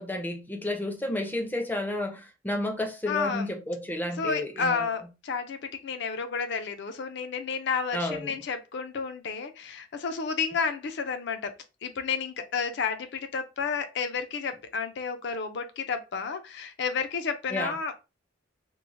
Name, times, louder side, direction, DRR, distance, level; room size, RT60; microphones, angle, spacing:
voice 1, 0.0-4.9 7.9-8.3 17.5-17.7, left 1 dB, 10° left, 0.4 m, -31 dB
voice 2, 3.1-3.5 4.2-11.5 11.8-18.0, left 5 dB, 65° left, 0.4 m, -31 dB
3.0 x 2.0 x 2.5 m
head